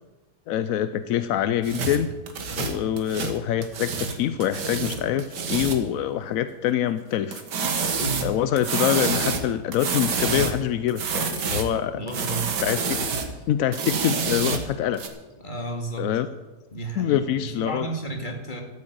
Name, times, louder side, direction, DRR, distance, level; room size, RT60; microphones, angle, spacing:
voice 1, 0.5-2.1 2.6-7.4 8.2-12.0 12.6-13.0 13.5-15.0 16.0-16.3 17.0-17.8, left 10 dB, 70° left, 12 dB, 0.8 m, -25 dB
sound 1, 1.6-4.2 4.4-5.9 7.3-10.6 10.9-11.7 12.1-13.3 13.7-15.1, right 5 dB, 80° right, 2.0 m, -27 dB
voice 2, 11.9-12.6 15.4-16.1 16.7-18.6, right 2 dB, 30° left, 2 dB, 2.2 m, -32 dB
13.0 x 8.5 x 7.9 m, 1.2 s
omnidirectional pair, 1.8 m